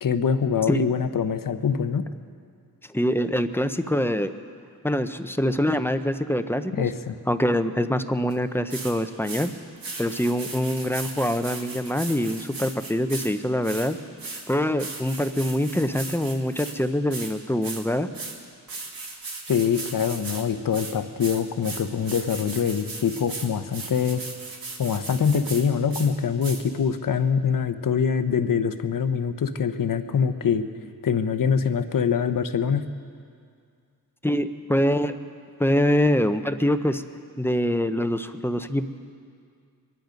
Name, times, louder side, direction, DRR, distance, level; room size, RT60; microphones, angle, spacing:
voice 1, 0.0-2.0 6.7-7.2 19.5-24.2 24.8-30.7 31.0-32.8, left 6 dB, 60° left, 10 dB, 0.9 m, -24 dB
voice 2, 2.9-4.3 4.8-6.8 7.3-9.5 10.0-14.0 14.5-18.1 34.2-35.1 35.6-37.0 37.4-38.8, equal, 5° left, 9 dB, 0.6 m, -24 dB
sound 1, 8.3-8.4 8.7-8.9 9.2-9.5 9.8-13.3 13.6-16.7 17.1-17.3 17.6-17.8 18.1-18.4 18.7-20.4 20.7-25.6 25.9-26.1 26.4-26.6, right 3 dB, 65° right, 2.1 m, -37 dB
24.0 x 11.0 x 5.2 m, 2.2 s
wide cardioid pair, 105°, 37 cm